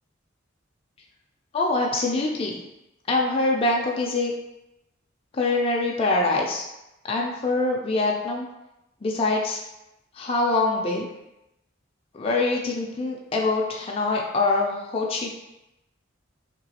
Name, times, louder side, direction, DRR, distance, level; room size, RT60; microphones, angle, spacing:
voice 1, 1.5-2.6 3.1-4.3 5.3-6.6 7.1-8.5 9.0-9.6 10.2-11.1 12.1-15.3, left 2 dB, 30° left, -1 dB, 0.3 m, -24 dB
3.1 x 2.9 x 2.8 m, 0.91 s
head